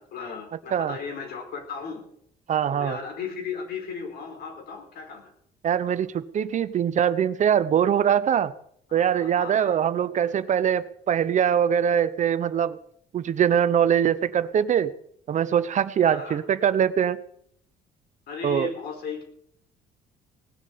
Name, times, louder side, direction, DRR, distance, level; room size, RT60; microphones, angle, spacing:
voice 1, 0.0-2.0 2.7-5.3 5.9-6.0 8.9-9.8 16.0-16.4 18.3-19.2, left 5 dB, 65° left, 4 dB, 4.7 m, -36 dB
voice 2, 2.5-3.0 5.6-8.5 8.9-12.8 13.1-14.9 15.3-17.2 18.4-18.7, right 9 dB, 45° right, 15 dB, 0.8 m, -22 dB
18.5 x 7.3 x 8.5 m, 0.68 s
cardioid pair, 110°, 17 cm